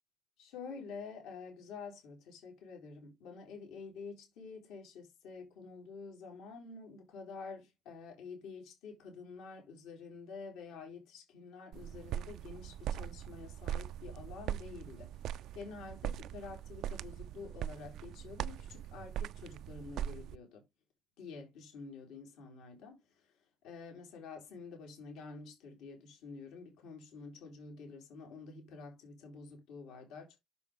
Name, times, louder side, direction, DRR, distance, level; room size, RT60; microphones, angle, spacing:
voice 1, 0.4-20.6 21.2-30.4, left 4 dB, 75° left, 3.5 m, -49 dB
sound 1, 11.7-20.4, right 11 dB, 60° right, 0.4 m, -41 dB
6.8 x 6.7 x 3.6 m
cardioid pair, 135°, 0 cm